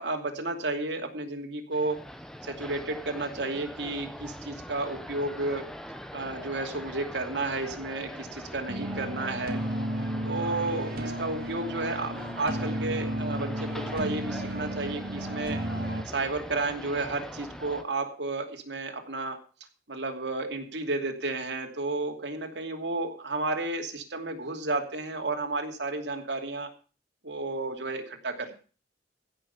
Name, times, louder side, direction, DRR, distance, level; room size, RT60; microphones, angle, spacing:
voice 1, 0.0-2.0 2.4-5.7 6.1-9.6 10.2-15.6 16.1-19.4 19.9-26.7 27.2-28.5, right 2 dB, 85° right, 3 dB, 2.8 m, -32 dB
sound 1, 1.7-17.8, equal, 5° left, 1.1 m, -42 dB
sound 2, 8.7-16.0, right 1 dB, 60° right, 2.0 m, -33 dB
16.0 x 6.4 x 7.1 m, 0.38 s
head